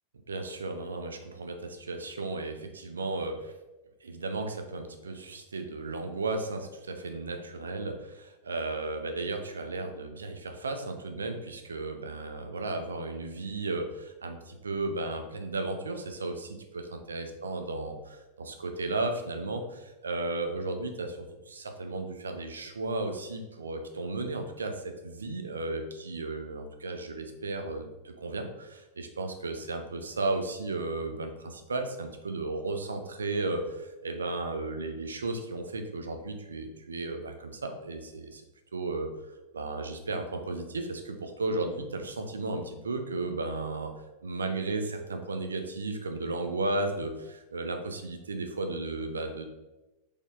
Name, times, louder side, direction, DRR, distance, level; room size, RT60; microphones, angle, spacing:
voice 1, 0.3-3.5 4.0-21.2 21.5-38.4 38.7-39.1 39.5-43.9 44.2-49.4, right 2 dB, 70° right, 5 dB, 0.5 m, -34 dB
4.0 x 3.0 x 3.5 m, 1.0 s
figure-of-eight pair, 90°, 0 cm